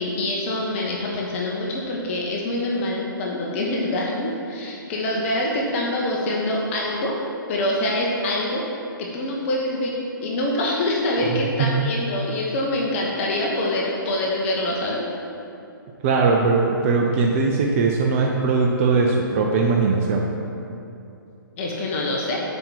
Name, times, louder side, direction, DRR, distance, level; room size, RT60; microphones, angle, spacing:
voice 1, 0.0-7.2 7.5-8.6 9.0-15.1 21.6-22.4, left 1 dB, 35° left, -2 dB, 1.1 m, -25 dB
voice 2, 16.0-20.2, right 4 dB, 35° right, 0 dB, 0.6 m, -20 dB
7.2 x 5.3 x 4.6 m, 2.7 s
hypercardioid pair, 135°, 12 cm